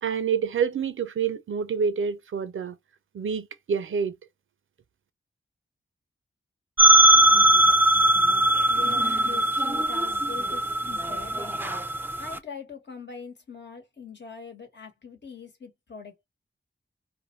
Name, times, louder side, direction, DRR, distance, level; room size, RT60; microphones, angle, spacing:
voice 1, 0.0-2.8 3.1-4.2, right 6 dB, 80° right, 0.5 m, -27 dB
sound 1, 6.8-12.4, right 2 dB, 10° right, 0.4 m, -20 dB
voice 2, 8.7-11.6 12.2-16.2, left 5 dB, 60° left, 1.1 m, -42 dB
2.5 x 2.0 x 3.0 m
cardioid pair, 50°, 21 cm